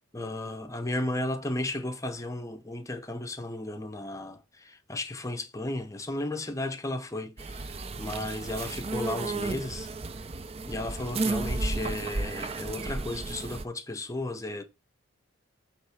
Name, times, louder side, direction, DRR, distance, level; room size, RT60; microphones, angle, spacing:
voice 1, 0.1-9.9 10.7-14.6, left 1 dB, 15° left, 0.7 m, -34 dB
sound 1, 7.4-13.6, right 3 dB, 30° right, 0.4 m, -33 dB
7.9 x 3.2 x 5.7 m
head